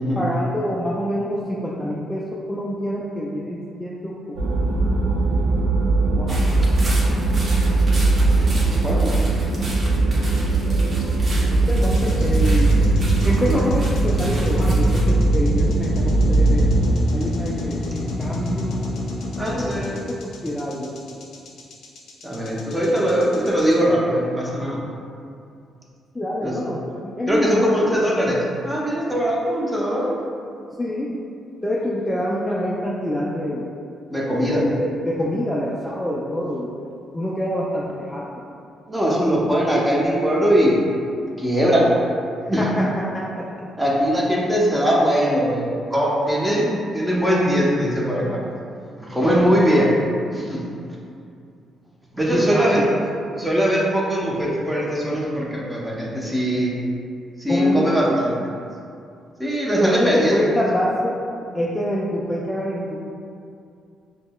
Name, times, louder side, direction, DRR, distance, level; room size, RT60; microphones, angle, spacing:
voice 1, 0.2-4.1 6.2-6.5 9.0-9.2 11.7-12.8 13.2-13.8 14.2-16.6 17.1-18.8 20.1-20.9 26.1-27.9 30.8-31.1 31.6-33.7 34.5-36.7 37.1-38.3 42.6-42.9 43.1-43.4 52.3-53.0 57.5-58.2 59.8-61.1 61.5-63.0, equal, 10° left, -5 dB, 0.3 m, -26 dB
sound 1, 4.4-17.0, right 2 dB, 85° right, 0.5 m, -19 dB
sound 2, 6.3-15.1, right 1 dB, 40° right, 0.8 m, -36 dB
sound 3, 11.8-23.7, left 2 dB, 65° left, 0.5 m, -28 dB
voice 2, 19.4-19.9 22.2-24.8 26.4-26.6 27.3-30.2 34.1-34.6 38.9-40.8 41.4-41.9 42.5-42.7 43.8-48.4 49.0-49.9 50.3-50.6 52.1-52.8 53.4-56.8 57.4-58.3 59.4-60.4, equal, 10° right, -5 dB, 0.7 m, -21 dB
5.0 x 2.0 x 2.2 m, 2.5 s
cardioid pair, 90°, 0 cm